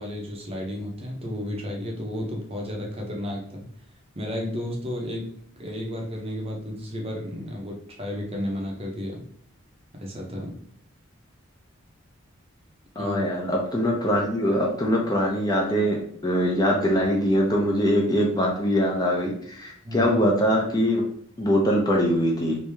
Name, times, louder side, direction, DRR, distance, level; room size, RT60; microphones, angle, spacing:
voice 1, 0.0-3.7 4.2-9.2 9.9-10.6 13.0-13.2 19.8-20.1, left 1 dB, 25° right, 0 dB, 0.6 m, -32 dB
voice 2, 13.0-21.0 21.4-22.6, equal, 20° left, -1 dB, 0.5 m, -23 dB
3.1 x 2.7 x 3.3 m, 0.63 s
head